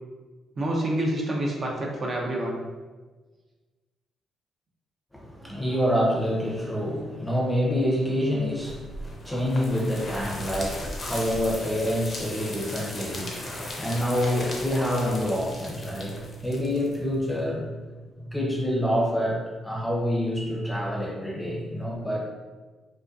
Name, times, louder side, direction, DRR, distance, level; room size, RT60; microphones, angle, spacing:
voice 1, 0.6-2.6 5.4-5.6, right 1 dB, 45° right, -2 dB, 0.5 m, -28 dB
voice 2, 5.1-17.9 18.2-22.3, equal, 5° left, -3 dB, 0.6 m, -27 dB
sound 1, 8.6-17.4, left 1 dB, 45° left, 0.6 m, -37 dB
2.6 x 2.2 x 2.3 m, 1.3 s
cardioid pair, 80°, 0 cm